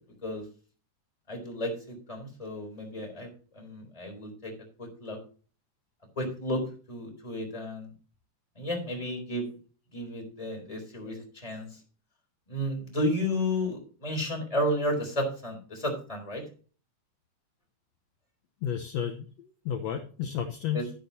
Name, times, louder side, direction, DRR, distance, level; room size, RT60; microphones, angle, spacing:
voice 1, 1.3-3.3 3.5-4.5 4.8-5.2 6.2-6.6 6.9-7.9 8.6-9.5 9.9-11.7 12.5-16.4 20.7-20.8, left 1 dB, 10° left, 1 dB, 3.7 m, -32 dB
voice 2, 18.6-20.9, left 8 dB, 65° left, 6 dB, 1.9 m, -32 dB
12.5 x 10.5 x 2.8 m, 0.38 s
omnidirectional pair, 3.6 m